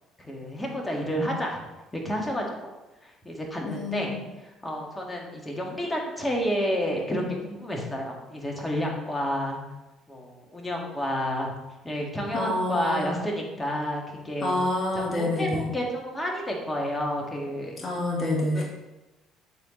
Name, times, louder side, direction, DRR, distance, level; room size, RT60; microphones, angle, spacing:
voice 1, 0.2-1.6 1.9-2.7 3.0-9.6 10.1-11.5 11.8-14.5 14.9-17.8 18.5-18.6, equal, 15° left, -1 dB, 2.1 m, -30 dB
voice 2, 3.6-4.1 12.3-13.1 14.4-15.6 17.8-18.6, left 1 dB, 30° left, -3 dB, 2.1 m, -27 dB
10.5 x 4.5 x 3.3 m, 1.0 s
hypercardioid pair, 65°, 0 cm